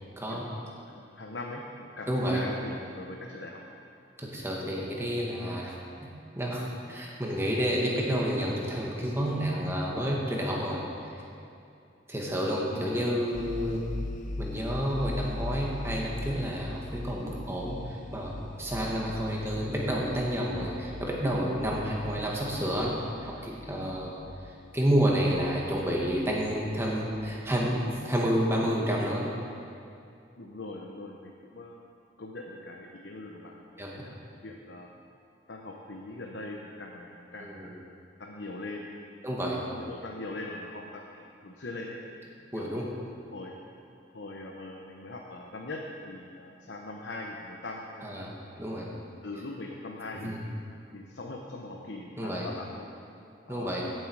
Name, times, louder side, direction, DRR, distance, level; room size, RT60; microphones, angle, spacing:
voice 1, 0.9-3.6 12.7-12.9 30.4-31.8 32.2-33.5 34.0-34.9 35.5-37.7 38.2-38.9 39.5-42.0 42.5-42.9 43.3-43.6 44.1-48.2 49.2-50.4 50.9-52.9 53.5-53.7, left 2 dB, 75° left, 0 dB, 0.9 m, -41 dB
voice 2, 2.1-2.4 4.2-5.7 6.0-10.8 12.1-13.8 14.4-18.3 18.6-22.9 23.2-24.1 24.7-29.3 33.8-33.9 37.4-37.7 39.2-39.6 42.5-42.8 48.0-48.3 48.6-48.9 50.2-50.4 52.2-52.5 53.5-53.8, equal, 15° right, -3 dB, 1.8 m, -29 dB
sound 1, 13.3-28.0, left 2 dB, 45° left, 0.6 m, -41 dB
16.0 x 7.7 x 4.8 m, 2.5 s
head